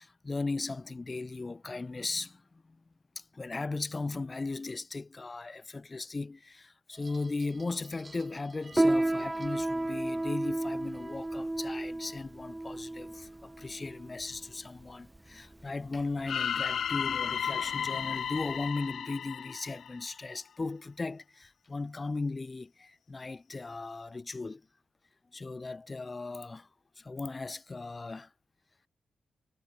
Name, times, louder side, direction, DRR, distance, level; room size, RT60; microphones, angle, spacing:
voice 1, 0.0-2.8 3.2-24.6 25.3-26.7 27.0-28.3, left 3 dB, 25° left, 2.0 m, -37 dB
sound 1, 6.9-14.3, right 4 dB, 35° right, 5.5 m, -59 dB
Piano, 8.7-18.7, right 1 dB, 10° right, 0.5 m, -33 dB
sound 2, 16.3-20.3, left 8 dB, 75° left, 1.0 m, -33 dB
wide cardioid pair, 125°, 0 cm